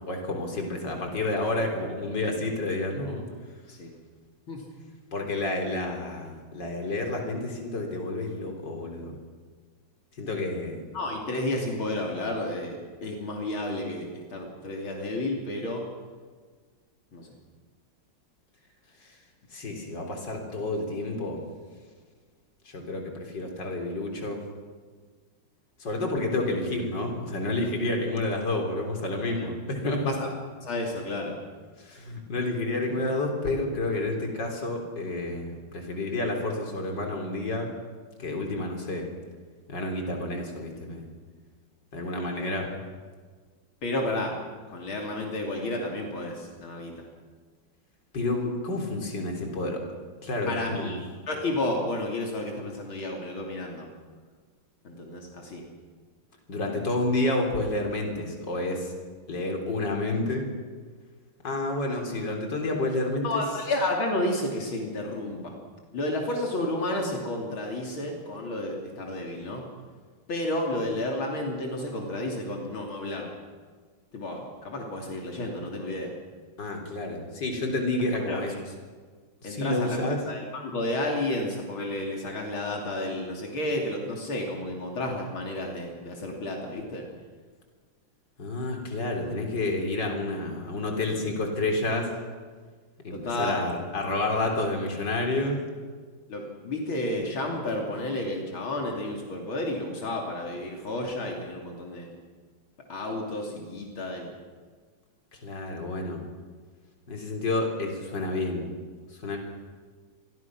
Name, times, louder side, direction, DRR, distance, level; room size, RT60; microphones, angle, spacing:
voice 1, 0.1-3.2 5.1-9.2 10.2-10.8 19.0-19.1 19.5-21.4 22.7-24.4 25.8-30.2 31.8-37.7 38.2-39.0 39.7-41.1 41.9-42.7 48.1-49.8 50.2-51.0 56.5-58.9 59.3-60.5 61.4-63.4 76.6-78.5 79.4-80.2 88.4-92.1 93.0-95.6 105.3-106.2 107.1-108.7 109.2-109.4, left 2 dB, 60° left, 2 dB, 4.3 m, -29 dB
voice 2, 10.9-15.9 17.1-17.3 29.3-29.5 30.1-30.3 30.6-31.4 43.8-44.4 44.7-47.1 50.5-51.0 51.3-53.9 54.8-55.6 63.2-65.5 65.9-69.6 70.3-73.3 74.1-76.1 78.3-78.6 79.4-87.0 93.1-93.6 96.3-102.1 102.9-104.3, left 1 dB, 80° left, 0 dB, 3.7 m, -31 dB
28.0 x 22.0 x 6.2 m, 1.5 s
omnidirectional pair, 2.2 m